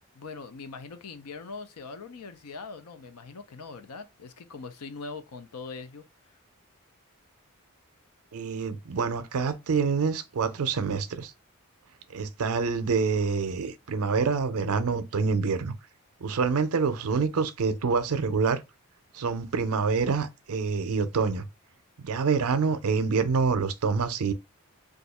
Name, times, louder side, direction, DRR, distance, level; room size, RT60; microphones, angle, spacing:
voice 1, 0.1-6.0, left 4 dB, 80° left, 0.5 m, -41 dB
voice 2, 8.3-11.3 12.1-15.7 16.2-18.6 19.1-21.4 22.0-24.3, right 5 dB, 70° right, 0.5 m, -26 dB
2.6 x 2.3 x 4.1 m
head